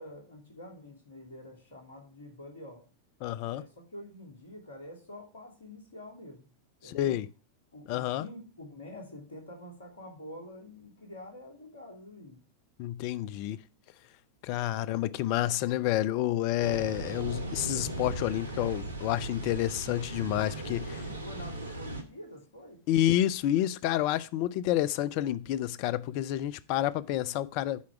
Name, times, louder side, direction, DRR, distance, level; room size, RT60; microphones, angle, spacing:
voice 1, 0.0-2.8 3.5-6.5 6.8-7.2 7.7-12.4 20.6-22.8, left 1 dB, 65° left, 2.6 m, -47 dB
voice 2, 3.2-3.6 6.8-7.3 7.9-8.3 12.8-13.6 14.4-20.8 22.9-27.8, left 13 dB, 45° left, 0.4 m, -29 dB
sound 1, 16.6-22.0, right 2 dB, 75° right, 1.1 m, -38 dB
8.2 x 4.7 x 5.9 m
figure-of-eight pair, 90°, 0 cm